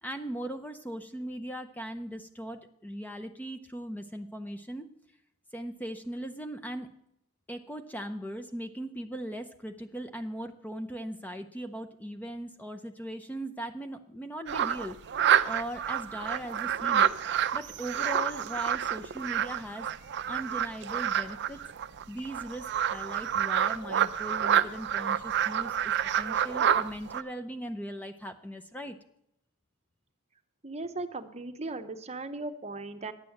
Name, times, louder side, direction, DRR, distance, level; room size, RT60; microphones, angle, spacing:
voice 1, 0.0-4.9 5.5-6.9 7.5-15.2 15.4-17.1 17.5-19.9 20.3-21.6 22.1-29.0, right 1 dB, 10° left, 8 dB, 0.6 m, -39 dB
sound 1, 14.5-27.2, right 9 dB, 55° right, 0.5 m, -28 dB
voice 2, 30.6-33.1, right 2 dB, 30° right, 8 dB, 0.8 m, -37 dB
10.5 x 8.9 x 6.4 m, 0.75 s
head